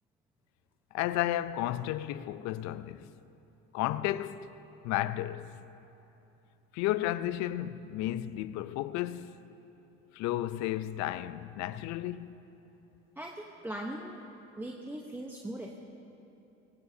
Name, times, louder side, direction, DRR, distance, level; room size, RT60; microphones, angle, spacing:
voice 1, 0.9-3.1 3.7-4.5 4.8-5.6 6.7-9.5 10.1-12.4, left 14 dB, 65° left, 0.6 m, -33 dB
voice 2, 13.2-14.2 14.5-15.7, right 1 dB, 5° right, 1.0 m, -40 dB
20.5 x 17.5 x 2.8 m
supercardioid pair, 100°, 29 cm